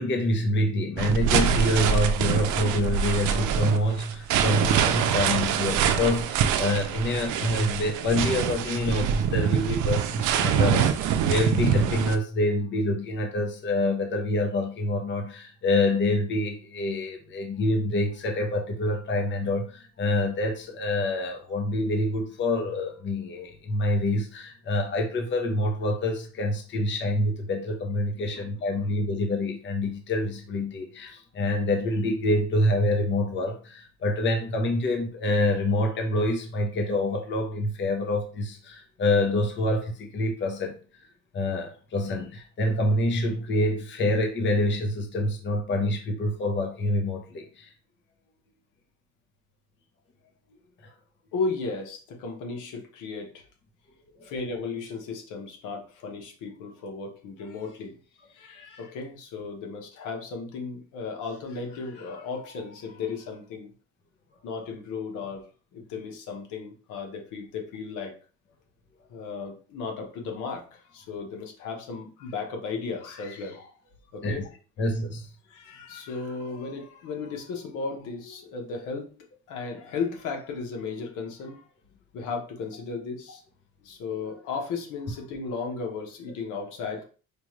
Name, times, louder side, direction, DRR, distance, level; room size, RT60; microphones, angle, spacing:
voice 1, 0.0-40.7 41.3-47.7 74.2-74.4 74.8-75.3, left 1 dB, 40° left, 2 dB, 0.9 m, -26 dB
sound 1, 1.0-12.2, right 8 dB, 80° right, 0.5 m, -25 dB
voice 2, 2.3-2.9 28.2-28.9 51.3-53.4 54.2-58.0 58.3-63.7 64.4-65.5 65.7-68.2 69.1-74.5 75.5-79.1 79.5-81.7 82.1-83.4 83.8-87.0, left 4 dB, 90° left, 2 dB, 1.2 m, -35 dB
5.0 x 2.4 x 3.1 m, 0.38 s
cardioid pair, 135°, 30 cm